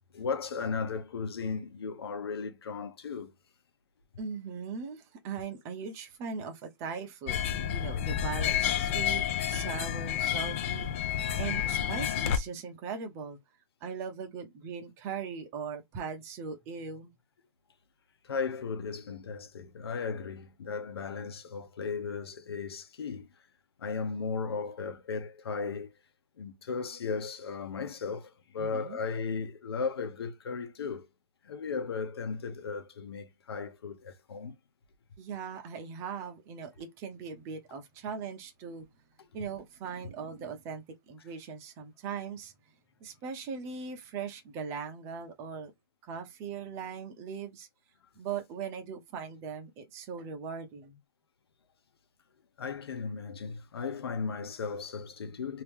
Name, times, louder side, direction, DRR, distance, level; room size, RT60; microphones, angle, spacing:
voice 1, 0.1-3.3 18.2-23.3 23.8-25.9 26.4-31.1 31.4-34.5 39.2-39.3 52.6-55.6, left 5 dB, 80° left, 1.0 m, -36 dB
voice 2, 4.2-13.4 13.8-17.1 28.6-29.0 35.2-38.9 39.3-42.5 43.0-45.7 46.0-47.7 48.2-51.0, right 6 dB, 20° right, 0.8 m, -39 dB
sound 1, 7.3-12.4, left 10 dB, 35° left, 0.5 m, -30 dB
3.0 x 2.8 x 3.5 m
hypercardioid pair, 165°, 13 cm